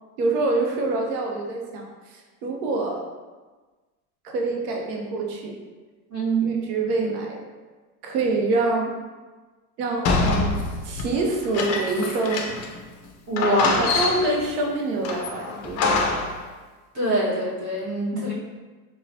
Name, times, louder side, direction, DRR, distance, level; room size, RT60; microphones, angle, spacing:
voice 1, 0.2-3.0 4.2-5.5 6.4-7.4 8.0-8.9 9.8-10.6 10.8-12.5 13.8-16.2 18.1-18.3, right 3 dB, 80° right, 0 dB, 0.9 m, -26 dB
voice 2, 6.1-6.5 13.3-13.9 16.9-18.3, right 2 dB, 40° right, -6 dB, 1.4 m, -24 dB
sound 1, 10.0-12.8 13.0-13.1 13.4-14.5 15.0-16.4, left 4 dB, 35° left, 0.5 m, -25 dB
4.1 x 2.4 x 2.6 m, 1.3 s
supercardioid pair, 115°, 46 cm